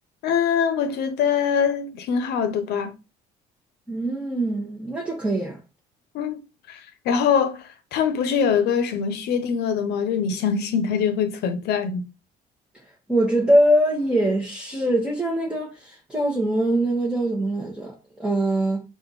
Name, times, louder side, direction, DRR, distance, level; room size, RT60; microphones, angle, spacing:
voice 1, 0.2-2.9 6.1-6.4 6.7-7.6 7.9-12.0, left 7 dB, 80° left, 0.8 m, -23 dB
voice 2, 3.9-5.6 13.1-17.9 18.2-18.8, right 1 dB, 5° right, 1.0 m, -22 dB
4.3 x 2.5 x 4.0 m
cardioid pair, 110°, 17 cm